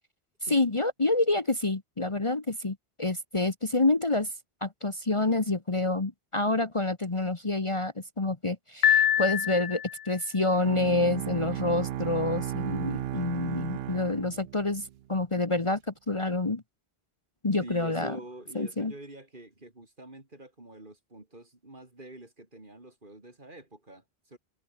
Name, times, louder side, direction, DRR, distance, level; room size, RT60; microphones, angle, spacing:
voice 1, 0.5-4.3 4.6-16.6 17.4-18.2 18.5-18.9, left 2 dB, 30° left, 1.3 m, -28 dB
Piano, 8.8-10.1, left 10 dB, 55° left, 0.6 m, -24 dB
Bowed string instrument, 10.5-15.0, right 12 dB, 70° right, 0.8 m, -35 dB
voice 2, 17.6-24.4, right 2 dB, 50° right, 4.3 m, -46 dB
omnidirectional pair, 1.1 m